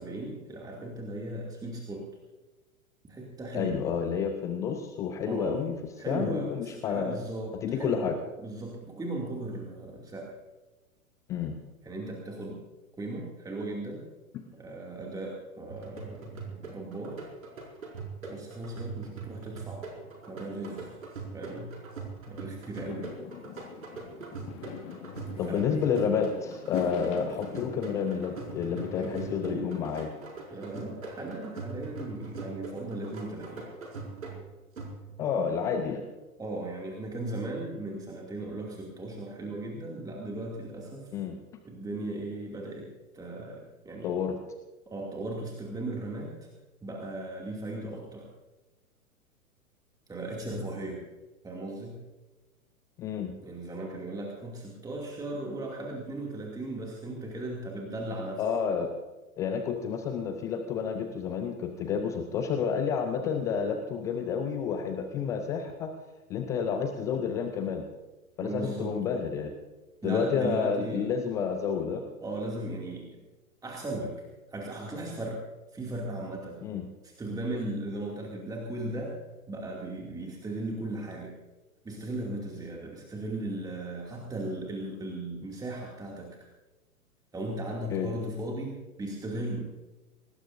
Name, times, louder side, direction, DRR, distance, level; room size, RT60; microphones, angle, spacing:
voice 1, 0.0-2.1 3.1-3.8 5.2-5.6 6.0-8.1 8.4-10.3 11.8-12.6 13.0-14.1 14.5-17.2 18.3-21.0 21.3-21.7 22.3-23.1 25.4-25.9 29.0-29.8 30.5-33.7 36.4-41.1 41.6-42.9 43.1-44.1 44.9-46.5 46.8-48.3 50.1-51.0 51.4-52.0 53.4-58.5 68.4-68.9 70.0-71.1 72.2-73.2 73.6-74.1 74.5-75.4 75.7-76.6 77.0-79.1 79.5-81.4 81.8-86.4 87.3-89.7, right 2 dB, 10° right, -2 dB, 2.5 m, -37 dB
voice 2, 3.5-5.7 6.1-7.2 7.6-8.2 11.3-11.5 25.4-30.1 35.2-36.0 41.1-41.4 44.0-44.4 53.0-53.3 58.4-58.9 59.4-65.9 66.3-67.9 68.4-69.5 70.0-72.0 76.6-76.8 87.9-88.1, left 6 dB, 10° left, 6 dB, 0.4 m, -30 dB
sound 1, 15.7-35.3, right 3 dB, 65° right, 6.0 m, -42 dB
Fireworks, 22.8-29.9, left 8 dB, 30° left, 1.7 m, -42 dB
24.5 x 19.0 x 2.7 m, 1.1 s
figure-of-eight pair, 105°, 43 cm